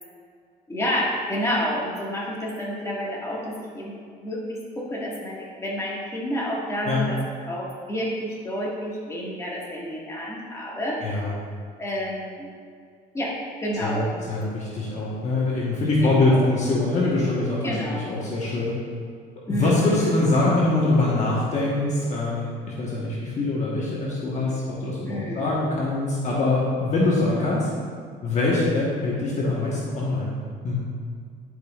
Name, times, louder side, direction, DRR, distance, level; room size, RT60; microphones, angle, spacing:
voice 1, 0.7-7.2 7.4-11.2 11.8-12.5 13.1-13.3 13.6-14.2 16.0-16.4 17.6-18.1 19.5-20.2 25.0-25.5, equal, 15° left, -5 dB, 1.9 m, -29 dB
voice 2, 11.0-11.3 13.8-18.7 19.5-27.7 28.2-30.4 30.6-30.8, left 2 dB, 45° left, -5 dB, 1.3 m, -23 dB
11.5 x 5.3 x 2.5 m, 2.1 s
cardioid pair, 110°, 17 cm